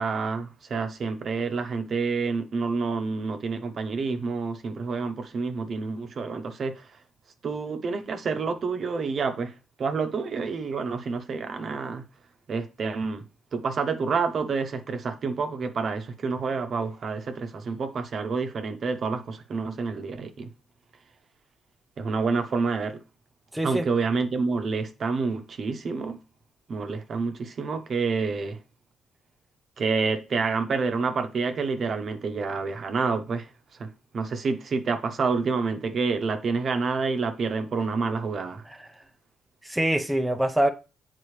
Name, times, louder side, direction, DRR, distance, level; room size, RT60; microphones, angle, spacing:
voice 1, 0.0-6.8 7.4-9.5 9.8-12.0 12.5-13.2 13.5-20.5 22.0-23.0 23.6-26.2 26.7-28.6 29.8-33.5 33.8-33.9 34.1-38.6, right 4 dB, 50° right, 0.9 m, -28 dB
voice 2, 23.5-23.9 38.7-38.9 39.6-40.7, right 1 dB, 5° right, 0.7 m, -24 dB
8.1 x 4.0 x 3.3 m
cardioid pair, 90°, 0 cm